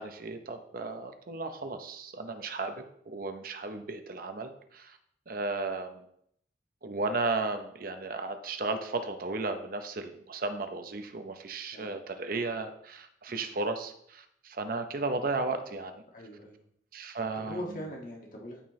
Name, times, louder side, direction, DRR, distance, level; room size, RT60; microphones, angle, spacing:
voice 1, 0.0-2.7 3.1-5.0 5.3-6.0 6.8-16.0 16.9-17.7, right 3 dB, 50° right, 7 dB, 0.7 m, -34 dB
voice 2, 16.1-16.6 17.3-18.6, left 1 dB, 50° left, -1 dB, 1.7 m, -41 dB
13.0 x 4.4 x 3.2 m, 0.70 s
head